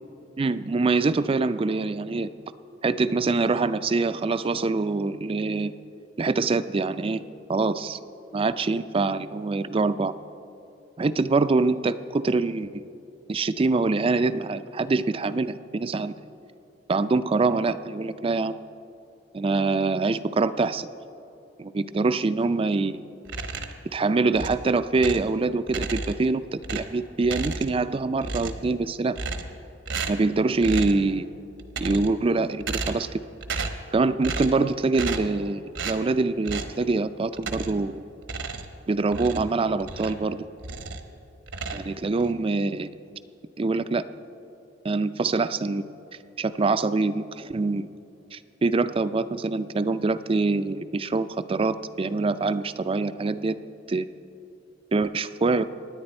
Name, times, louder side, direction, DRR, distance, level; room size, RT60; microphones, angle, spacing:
voice 1, 0.4-2.3 2.8-5.7 6.2-7.2 7.5-8.0 8.3-10.1 11.0-12.8 13.3-16.1 16.9-18.6 19.3-20.9 21.6-23.0 23.9-26.4 26.7-29.2 30.1-31.3 31.8-33.1 33.9-38.1 38.9-40.4 41.7-42.9 43.6-44.0 44.8-45.9 46.4-47.9 48.3-53.6 53.9-54.1 54.9-55.6, right 3 dB, 30° right, 13 dB, 0.4 m, -24 dB
sound 1, 23.2-23.9 24.3-25.3 25.7-26.3 26.6-27.9 28.2-28.7 29.1-29.6 29.9-30.3 30.6-31.0 31.6-32.2 32.6-33.1 33.4-33.9 34.2-34.6 34.9-35.4 35.7-36.0 36.4-36.8 37.4-37.9 38.2-40.3 40.6-41.1 41.5-42.3, right 3 dB, 75° right, 1.1 m, -33 dB
25.0 x 10.0 x 4.3 m, 2.8 s
head